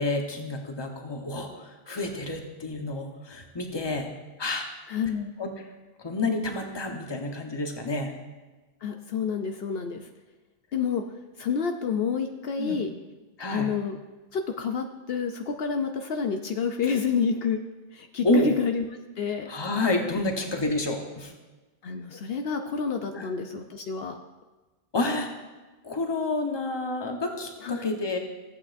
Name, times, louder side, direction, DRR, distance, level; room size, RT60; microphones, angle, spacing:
voice 1, 0.0-4.1 4.4-4.7 5.4-5.5 6.0-8.1 12.6-12.8 13.4-13.7 18.2-18.5 19.5-21.3 23.1-23.3 24.9-25.3 25.8-28.2, left 2 dB, 25° left, 3 dB, 1.0 m, -29 dB
voice 2, 4.9-5.3 8.8-10.1 10.7-11.0 11.4-12.9 13.5-14.0 14.3-17.6 17.9-18.8 19.2-19.5 21.8-24.2 27.6-28.0, left 6 dB, 70° left, 5 dB, 0.8 m, -29 dB
15.0 x 8.4 x 2.6 m, 1.2 s
omnidirectional pair, 1.1 m